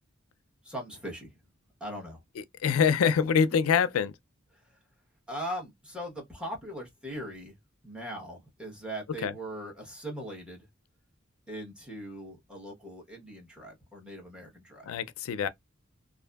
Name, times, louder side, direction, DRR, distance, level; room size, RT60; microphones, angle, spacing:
voice 1, 0.6-1.3 1.8-2.2 5.3-7.6 7.8-10.7 11.5-14.9, equal, 5° right, 1.0 m, -40 dB
voice 2, 2.6-4.1 9.2-9.3 14.9-15.5, left 7 dB, 85° left, 0.4 m, -24 dB
2.6 x 2.5 x 2.2 m
head